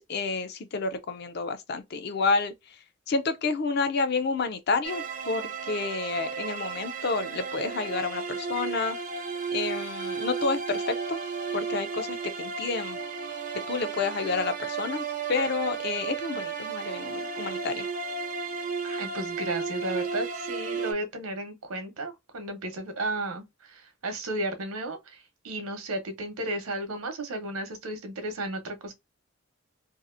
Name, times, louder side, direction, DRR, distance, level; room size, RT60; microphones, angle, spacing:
voice 1, 0.0-2.8 3.1-9.0 9.5-11.2 11.5-13.0 13.7-17.9, left 4 dB, 50° left, 0.5 m, -30 dB
sound 1, 4.8-20.9, right 5 dB, 35° right, 0.4 m, -33 dB
voice 2, 18.8-25.2 25.4-28.9, right 1 dB, 90° right, 0.8 m, -34 dB
2.7 x 2.4 x 2.4 m
head